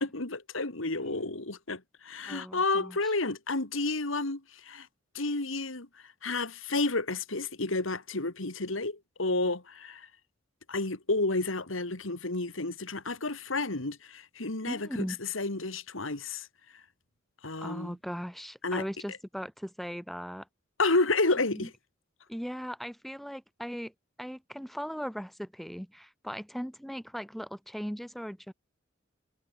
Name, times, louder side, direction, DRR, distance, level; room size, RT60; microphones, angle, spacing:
voice 1, 0.0-4.9 5.1-10.1 10.7-15.1 15.3-16.5 17.4-18.0 18.6-18.8 20.8-21.7, left 3 dB, 85° left, 2.5 m, -31 dB
voice 2, 2.3-3.0 14.7-15.2 17.6-20.5 21.5-21.7 22.3-23.9 24.2-28.5, equal, ahead, 5.9 m, -38 dB
head